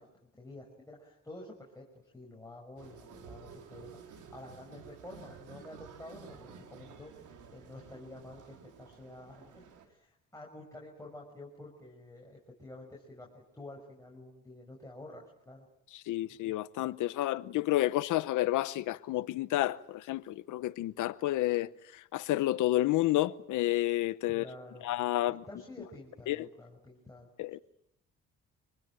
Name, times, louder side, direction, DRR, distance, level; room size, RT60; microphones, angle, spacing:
voice 1, 0.0-15.7 24.3-24.9 25.3-27.3, left 1 dB, 10° left, 6.0 m, -50 dB
sound 1, 2.8-9.9, right 6 dB, 85° right, 4.3 m, -52 dB
voice 2, 16.1-21.7 22.1-24.5 24.8-25.4 26.3-26.4 27.4-27.6, left 15 dB, 85° left, 1.0 m, -30 dB
26.0 x 20.0 x 9.1 m
cardioid pair, 90°, 30 cm